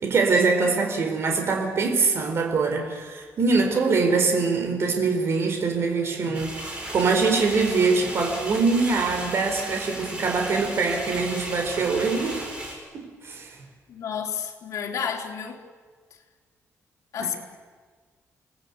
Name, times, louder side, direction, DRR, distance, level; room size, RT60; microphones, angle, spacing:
voice 1, 0.0-12.4 12.9-13.6 17.2-17.4, right 4 dB, 50° right, 3 dB, 4.3 m, -23 dB
sound 1, 6.3-12.7, right 1 dB, 20° right, 6.9 m, -35 dB
voice 2, 13.9-15.6 17.1-17.4, left 7 dB, 75° left, 1 dB, 3.7 m, -31 dB
29.0 x 19.5 x 8.5 m, 1.5 s
wide cardioid pair, 155°, 5 cm